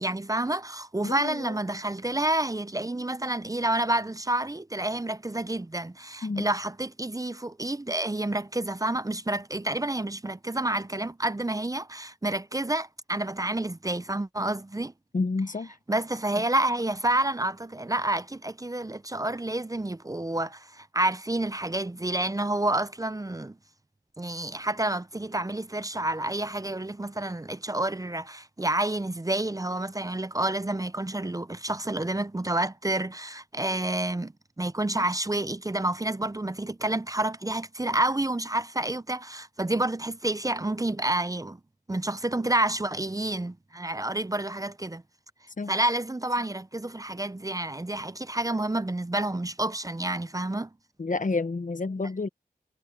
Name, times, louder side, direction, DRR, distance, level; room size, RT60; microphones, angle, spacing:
voice 1, 0.0-14.9 15.9-23.6 24.2-34.3 34.6-41.6 41.9-45.0 45.7-50.7, right 1 dB, 20° right, 0.6 m, -29 dB
voice 2, 1.0-1.5 6.2-6.5 15.1-15.7 45.6-45.7 51.0-52.3, left 3 dB, 55° left, 1.0 m, -29 dB
cardioid pair, 40°, 16 cm